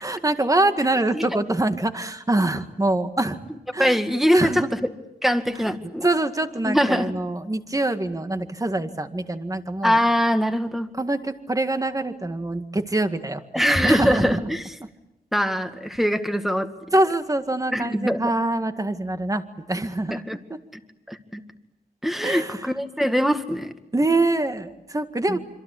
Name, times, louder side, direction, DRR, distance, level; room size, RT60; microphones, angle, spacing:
voice 1, 0.0-3.4 3.7-4.0 4.3-4.7 6.0-10.0 11.0-13.4 13.8-14.4 16.9-20.2 20.5-20.6 22.2-22.7 23.9-25.4, right 2 dB, 20° right, 8 dB, 1.9 m, -24 dB
voice 2, 3.8-4.8 5.2-6.1 6.6-7.1 9.8-10.9 13.5-14.8 15.3-16.7 17.7-18.3 20.1-20.4 20.7-20.8 21.1-21.4 22.0-23.7 25.3-25.4, equal, ahead, 7 dB, 2.0 m, -22 dB
26.5 x 26.0 x 8.5 m, 0.93 s
wide cardioid pair, 115°, 17 cm